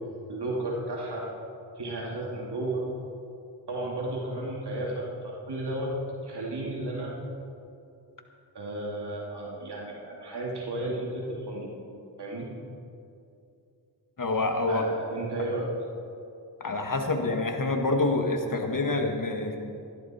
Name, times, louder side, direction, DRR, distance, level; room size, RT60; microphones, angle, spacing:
voice 1, 0.3-1.3 1.8-2.8 3.7-5.9 6.2-7.1 8.5-11.7 12.2-12.5 14.7-15.7, right 2 dB, 70° right, -4 dB, 2.7 m, -33 dB
voice 2, 14.2-14.8 16.6-19.6, left 2 dB, 50° left, 4 dB, 1.8 m, -27 dB
15.5 x 12.0 x 4.4 m, 2.6 s
cardioid pair, 45°, 42 cm